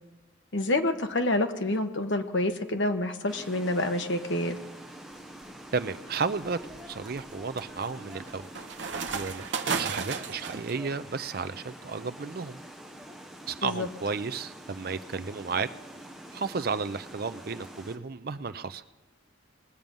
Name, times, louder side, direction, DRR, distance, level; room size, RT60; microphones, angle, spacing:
voice 1, 0.5-4.6 13.6-13.9, left 1 dB, 65° left, 7 dB, 1.0 m, -28 dB
sound 1, 3.3-18.0, right 1 dB, ahead, 0.7 m, -46 dB
sound 2, 5.2-5.5 6.1-10.7, right 5 dB, 65° right, 0.9 m, -34 dB
voice 2, 5.7-6.6 6.9-8.5 9.1-12.6 13.5-15.7 16.3-18.8, right 5 dB, 50° right, 13 dB, 0.5 m, -33 dB
20.0 x 7.5 x 5.4 m, 1.1 s
head